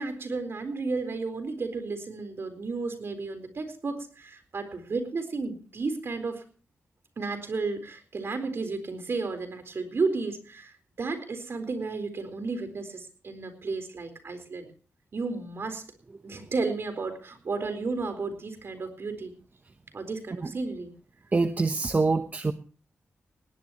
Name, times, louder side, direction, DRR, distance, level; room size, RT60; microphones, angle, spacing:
voice 1, 0.0-6.4 7.2-14.7 15.1-15.8 16.2-19.3 19.9-20.9, right 3 dB, 55° right, 8 dB, 4.1 m, -33 dB
voice 2, 21.3-22.5, right 3 dB, 35° right, 9 dB, 0.9 m, -25 dB
19.5 x 18.0 x 3.0 m, 0.38 s
wide cardioid pair, 90°, 5 cm